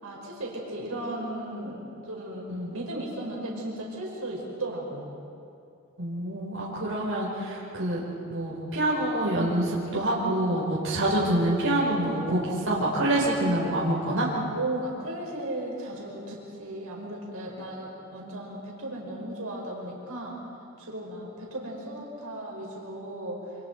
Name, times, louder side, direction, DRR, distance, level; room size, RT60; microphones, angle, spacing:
voice 1, 0.0-1.8 2.1-5.1 14.5-20.4 20.8-23.5, right 1 dB, 80° right, -2 dB, 5.3 m, -36 dB
voice 2, 6.0-8.0 8.3-14.3, right 1 dB, 65° right, -5 dB, 4.9 m, -26 dB
28.0 x 26.0 x 4.7 m, 2.6 s
head